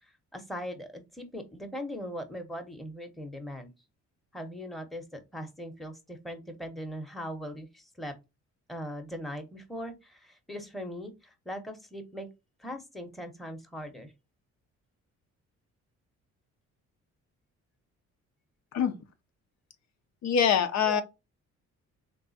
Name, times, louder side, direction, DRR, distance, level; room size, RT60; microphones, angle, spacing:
voice 1, 0.0-3.7 4.3-8.1 8.7-12.3 12.6-14.1 20.8-21.0, equal, ahead, 0.9 m, -40 dB
voice 2, 20.2-21.0, left 7 dB, 65° left, 0.6 m, -24 dB
3.5 x 3.0 x 2.7 m
cardioid pair, 90°, 30 cm